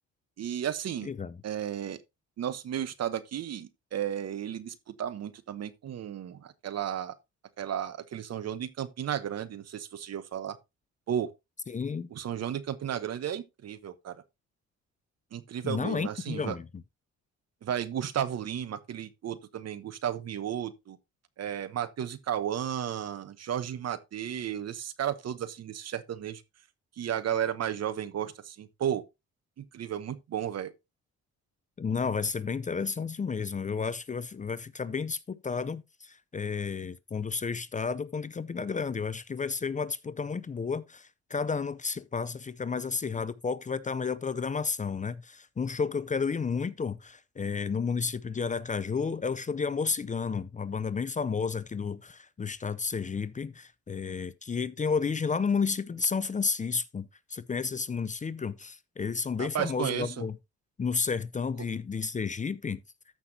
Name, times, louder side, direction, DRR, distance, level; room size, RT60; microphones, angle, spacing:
voice 1, 0.4-1.1 1.4-2.0 2.4-7.1 7.6-10.6 11.1-11.3 12.1-14.1 15.3-16.5 17.6-21.0 21.4-26.4 27.0-29.0 29.6-30.7 59.4-60.1, right 9 dB, 55° right, 1.1 m, -33 dB
voice 2, 1.0-1.4 11.7-12.1 15.6-16.8 31.8-60.4 60.8-62.8, left 5 dB, 25° left, 0.6 m, -32 dB
14.0 x 5.9 x 2.8 m
cardioid pair, 90°, 30 cm